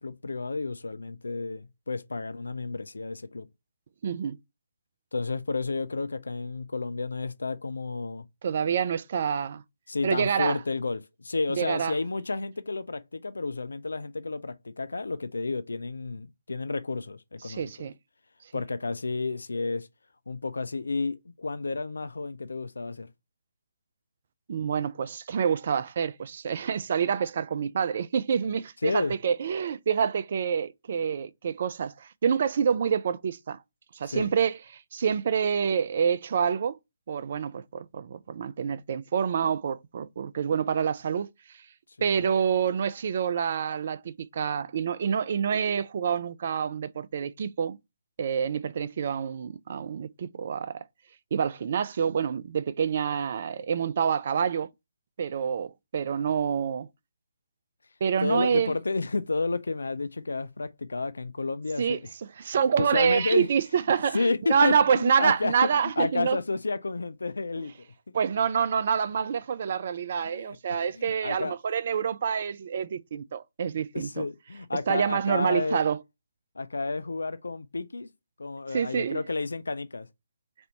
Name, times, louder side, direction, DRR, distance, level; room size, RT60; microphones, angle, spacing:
voice 1, 0.0-3.5 5.1-8.2 9.9-17.9 18.5-19.9 20.3-23.1 28.8-29.1 34.0-34.3 42.0-42.3 58.2-62.1 62.5-63.5 64.1-67.7 70.2-71.5 73.9-75.8 76.6-78.1 78.4-80.1, left 3 dB, 70° left, 0.4 m, -31 dB
voice 2, 4.0-4.4 8.4-9.6 10.0-10.6 11.5-11.9 17.4-17.9 24.5-33.6 34.0-36.8 37.1-41.3 42.0-47.8 48.2-50.8 51.3-54.7 55.2-56.9 58.0-58.7 61.8-62.0 62.4-66.4 68.1-74.3 74.9-76.0 78.7-79.2, right 7 dB, 45° right, 0.3 m, -27 dB
4.2 x 2.6 x 4.3 m
figure-of-eight pair, 140°, 0 cm